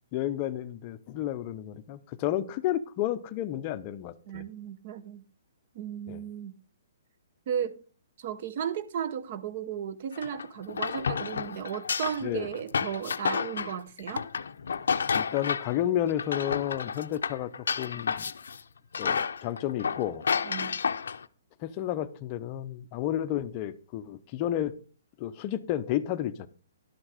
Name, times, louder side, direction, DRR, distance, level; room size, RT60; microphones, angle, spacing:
voice 1, 0.1-4.4 6.1-6.2 12.2-12.5 15.1-17.5 17.8-18.3 19.0-20.2 21.6-24.7 25.2-26.5, left 12 dB, 25° left, 0.6 m, -31 dB
voice 2, 4.3-5.2 5.7-6.5 7.5-7.8 8.2-14.3 20.4-20.8, right 8 dB, 35° right, 0.7 m, -35 dB
sound 1, 10.1-15.8 16.1-18.6 18.9-21.2, left 6 dB, 90° left, 0.6 m, -31 dB
11.5 x 6.3 x 4.8 m
hypercardioid pair, 170°, 0 cm